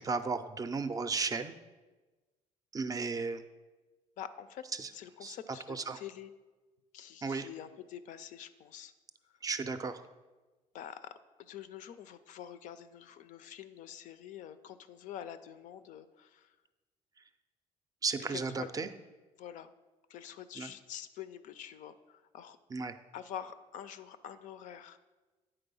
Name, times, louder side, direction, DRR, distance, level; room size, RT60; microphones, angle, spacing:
voice 1, 0.0-1.5 2.7-3.4 4.7-4.9 5.2-5.4 5.7-6.0 7.2-7.5 9.4-10.0 18.0-18.9 20.6-20.7 22.7-23.0, right 4 dB, 25° right, 10 dB, 0.4 m, -34 dB
voice 2, 4.2-4.6 4.9-6.3 6.9-8.9 9.2-9.4 10.7-16.6 18.3-18.7 19.4-19.7 20.1-22.6 23.1-25.0, left 10 dB, 70° left, 12 dB, 0.5 m, -46 dB
8.9 x 4.0 x 5.4 m, 1.2 s
cardioid pair, 115°, 13 cm